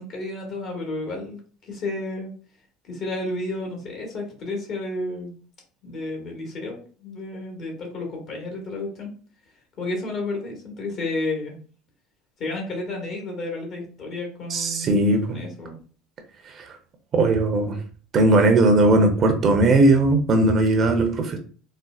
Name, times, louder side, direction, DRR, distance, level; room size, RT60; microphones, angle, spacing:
voice 1, 0.0-1.4 1.7-2.3 2.9-5.3 5.8-9.1 9.8-11.6 12.4-14.9 15.3-15.7, left 2 dB, 55° left, 1.3 m, -31 dB
voice 2, 14.5-15.4 16.6-16.8 17.1-17.8 18.1-21.4, right 2 dB, 40° right, 0.7 m, -18 dB
4.2 x 2.0 x 2.4 m
supercardioid pair, 100°, 0 cm